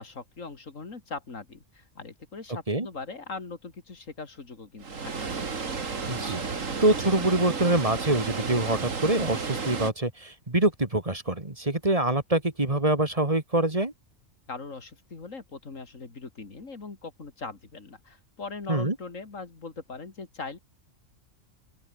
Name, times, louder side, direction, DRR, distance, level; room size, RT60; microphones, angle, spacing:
voice 1, 0.0-5.3 14.5-20.6, left 4 dB, 90° left, 3.1 m, -40 dB
Water, 4.8-9.9, right 5 dB, 85° right, 2.6 m, -32 dB
voice 2, 6.1-6.4 6.8-13.9 18.7-18.9, right 2 dB, 30° right, 2.3 m, -25 dB
open air
omnidirectional pair, 1.3 m